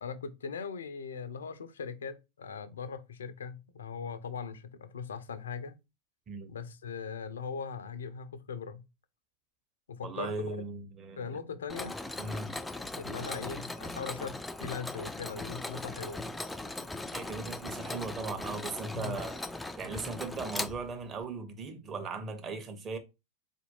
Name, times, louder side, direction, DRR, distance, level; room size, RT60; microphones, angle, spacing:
voice 1, 0.0-5.8 6.5-8.8 9.9-10.6 11.2-12.0 13.0-16.3 18.9-19.2 19.8-20.0, left 6 dB, 65° left, 0.5 m, -40 dB
voice 2, 10.0-11.4 12.2-12.5 17.1-19.4 19.8-23.0, right 4 dB, 25° right, 0.8 m, -38 dB
Mechanisms, 11.7-21.2, left 2 dB, 5° left, 0.3 m, -39 dB
4.3 x 2.6 x 2.9 m
figure-of-eight pair, 90°, 0 cm